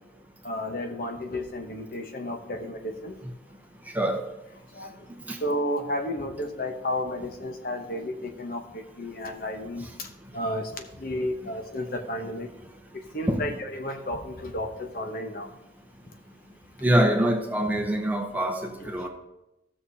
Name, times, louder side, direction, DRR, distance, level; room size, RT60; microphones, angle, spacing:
voice 1, 0.4-3.1 4.7-5.1 5.4-12.5 13.1-15.5 18.8-18.9, left 1 dB, 50° left, 5 dB, 0.9 m, -32 dB
voice 2, 3.9-4.3 5.3-5.4 13.3-13.5 16.8-19.1, right 1 dB, 10° right, 3 dB, 0.8 m, -24 dB
15.0 x 6.4 x 2.8 m, 0.92 s
head